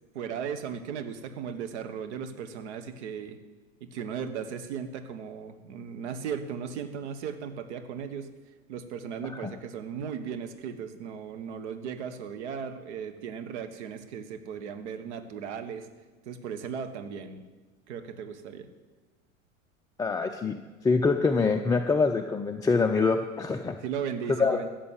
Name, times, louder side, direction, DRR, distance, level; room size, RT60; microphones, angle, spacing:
voice 1, 0.1-3.4 3.8-8.3 8.7-15.9 16.2-17.4 17.9-18.7 23.8-24.7, right 7 dB, 55° right, 9 dB, 1.5 m, -36 dB
voice 2, 20.0-20.6 20.8-23.7 24.4-24.6, left 4 dB, 10° left, 3 dB, 0.5 m, -25 dB
14.0 x 7.4 x 9.1 m, 1.3 s
figure-of-eight pair, 85°, 41 cm